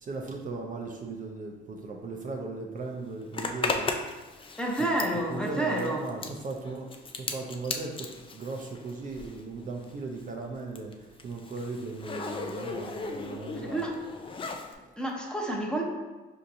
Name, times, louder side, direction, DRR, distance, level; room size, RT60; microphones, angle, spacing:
voice 1, 0.0-4.2 5.3-13.9 14.8-14.9, right 3 dB, 40° right, 1 dB, 0.5 m, -38 dB
Zipper (clothing), 3.3-9.5 9.8-14.7, left 3 dB, 25° left, 0.4 m, -36 dB
voice 2, 4.6-6.0 13.7-13.9 15.0-15.8, right 1 dB, 5° left, -2 dB, 0.8 m, -29 dB
5.1 x 2.8 x 2.6 m, 1.2 s
cardioid pair, 90°, 20 cm